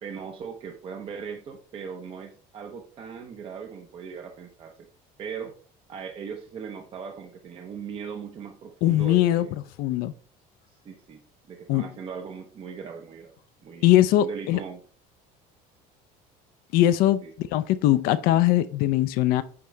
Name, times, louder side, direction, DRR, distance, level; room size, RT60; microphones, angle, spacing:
voice 1, 0.0-4.9 5.2-5.5 5.9-9.5 10.7-11.2 11.5-13.4 13.6-13.9 14.2-14.8 17.2-17.3, right 6 dB, 35° right, 4 dB, 0.7 m, -39 dB
voice 2, 8.8-9.5 9.8-10.1 11.7-11.8 13.8-14.6 16.7-19.4, left 14 dB, 70° left, 11 dB, 0.5 m, -21 dB
8.6 x 3.7 x 3.3 m, 0.43 s
cardioid pair, 155°, 16 cm